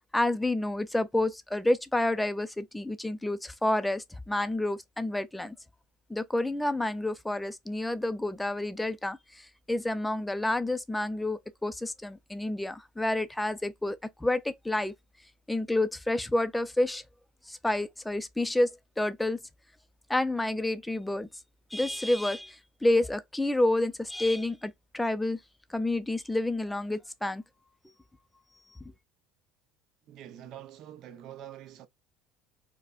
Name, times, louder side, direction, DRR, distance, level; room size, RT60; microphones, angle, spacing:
voice 1, 0.1-5.5 6.1-14.9 15.5-17.0 17.5-19.4 20.1-21.3 21.7-25.4 25.7-27.4, left 1 dB, 5° left, 0.4 m, -29 dB
voice 2, 30.1-31.9, right 11 dB, 55° right, 0.6 m, -45 dB
4.7 x 2.1 x 2.3 m
supercardioid pair, 115°, 0 cm